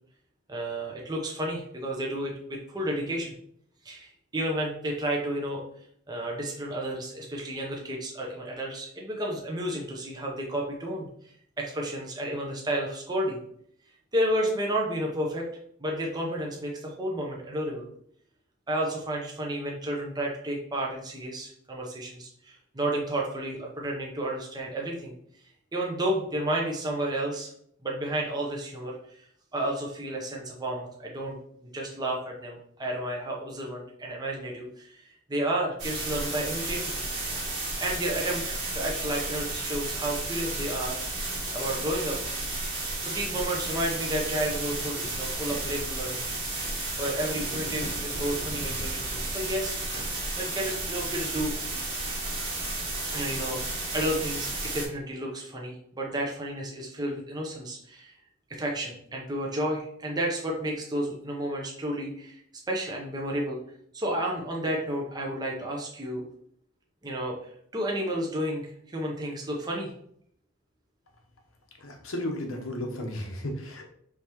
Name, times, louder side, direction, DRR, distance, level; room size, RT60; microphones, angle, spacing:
voice 1, 0.5-3.3 3.8-5.6 6.1-11.1 11.6-13.4 14.1-15.5 15.8-17.9 18.7-25.1 25.7-27.5 27.8-28.9 29.5-31.4 31.7-36.9 37.8-41.0 41.5-42.2 43.0-46.3 47.0-49.8 50.4-51.5 53.1-58.1 58.5-62.4 62.7-63.6 63.9-66.2 67.0-67.4 67.7-69.9, right 1 dB, 20° right, -1 dB, 0.6 m, -31 dB
sound 1, 35.8-54.8, right 2 dB, 60° right, 1.3 m, -32 dB
voice 2, 71.8-73.8, left 1 dB, 90° left, 2 dB, 0.9 m, -34 dB
4.7 x 3.4 x 2.9 m, 0.67 s
head